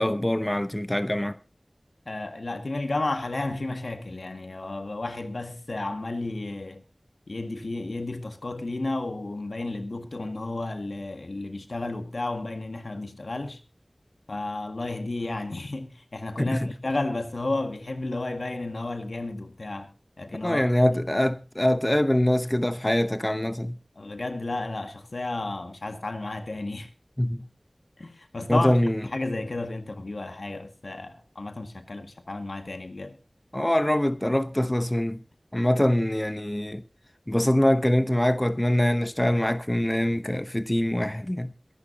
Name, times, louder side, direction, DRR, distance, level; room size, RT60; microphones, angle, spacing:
voice 1, 0.0-1.4 16.4-16.7 20.4-23.8 27.2-27.5 28.5-29.0 33.5-35.2 35.5-36.8 37.3-41.5, left 1 dB, 20° left, 0.8 m, -24 dB
voice 2, 2.1-6.8 7.3-13.6 14.3-19.9 20.2-21.0 24.0-26.9 28.0-33.2, left 2 dB, 85° left, 1.8 m, -32 dB
23.0 x 11.5 x 2.8 m
wide cardioid pair, 45°, 0 cm